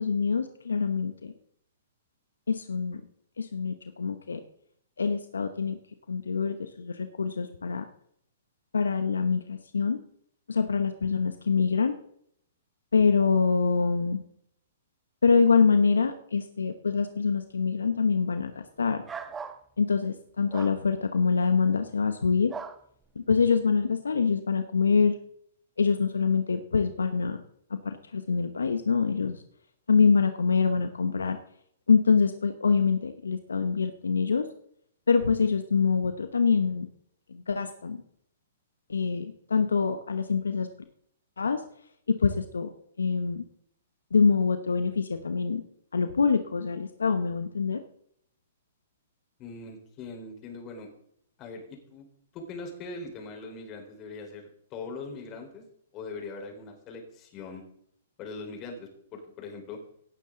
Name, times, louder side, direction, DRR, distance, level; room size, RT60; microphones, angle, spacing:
voice 1, 0.0-1.3 2.5-3.0 3.4-4.4 5.0-5.8 6.1-7.9 8.7-10.0 10.5-11.9 12.9-14.2 15.2-19.0 19.8-22.5 23.2-25.2 25.8-27.4 27.7-29.4 29.9-31.4 31.9-34.4 35.1-36.9 37.3-38.0 38.9-40.7 41.4-41.6 42.1-42.7 43.0-43.4 44.1-45.6 45.9-47.8, left 5 dB, 85° left, 9 dB, 1.0 m, -25 dB
sound 1, 19.1-19.6 20.5-20.8 22.5-22.8, right 6 dB, 15° right, 1.1 m, -38 dB
voice 2, 49.4-50.9 51.4-52.1 52.3-55.6 55.9-57.6 58.2-59.8, left 3 dB, 35° left, 3 dB, 4.1 m, -41 dB
17.0 x 9.3 x 3.8 m, 0.67 s
hypercardioid pair, 125°, 0 cm